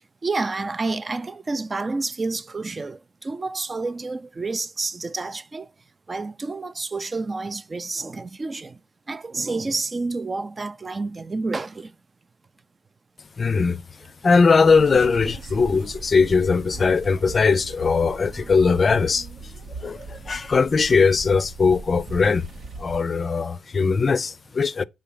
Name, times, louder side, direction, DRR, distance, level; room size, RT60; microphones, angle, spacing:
voice 1, 0.2-5.7 6.1-8.8 9.1-11.9 19.9-20.4, right 3 dB, 30° right, 0.5 m, -29 dB
voice 2, 13.4-13.8 14.2-19.3 19.8-22.5 22.8-24.8, left 4 dB, 40° left, 0.5 m, -20 dB
sound 1, 14.7-23.0, right 3 dB, 55° right, 0.8 m, -39 dB
7.2 x 3.8 x 5.6 m
cardioid pair, 85°, 0 cm